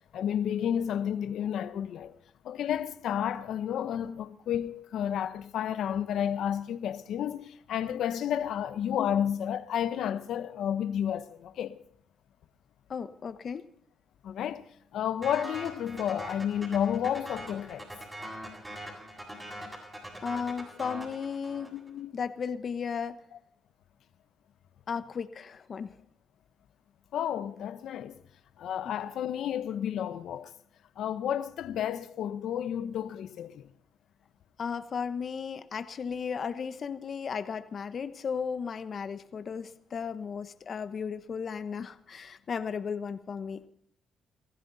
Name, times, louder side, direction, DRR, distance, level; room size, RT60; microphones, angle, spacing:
voice 1, 0.1-2.1 2.4-11.8 14.2-14.6 14.9-17.9 21.6-22.1 27.1-28.2 28.6-30.5 31.0-33.7, left 9 dB, 75° left, 1.0 m, -31 dB
voice 2, 12.9-13.7 20.2-21.8 22.1-23.2 24.9-26.0 28.8-28.9 34.6-43.7, left 6 dB, 50° left, 1.1 m, -35 dB
sound 1, 15.2-21.9, right 1 dB, 15° right, 7.7 m, -42 dB
22.0 x 15.0 x 4.2 m
cardioid pair, 90°, 0 cm